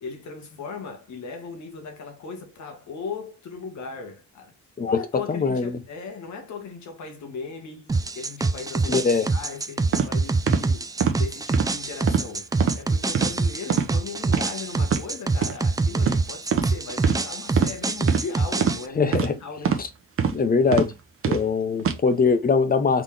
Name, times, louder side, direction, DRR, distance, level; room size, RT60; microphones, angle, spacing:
voice 1, 0.0-4.5 4.9-19.8, left 5 dB, 65° left, 1.7 m, -38 dB
voice 2, 5.3-5.8 8.9-9.3 19.0-19.4 19.8-19.9 20.3-20.9 21.3-23.0, left 5 dB, 30° left, 0.8 m, -22 dB
sound 1, 7.9-18.9, right 3 dB, 10° right, 0.4 m, -25 dB
sound 2, 9.9-10.1 10.5-10.6 11.0-11.2 11.5-11.7 12.1-12.3 12.6-12.8 13.1-13.3 13.7-13.9 14.3-14.4 14.8-15.0 15.4-15.5 16.0-16.2 16.5-16.7 17.0-17.2 17.6-17.7 18.1-18.2 18.6-18.8 19.1-19.3 19.6-19.8 20.2-20.4 20.7-20.9 21.2-21.4 21.8-22.0, right 7 dB, 45° right, 0.9 m, -23 dB
4.0 x 3.7 x 3.4 m
cardioid pair, 90°, 30 cm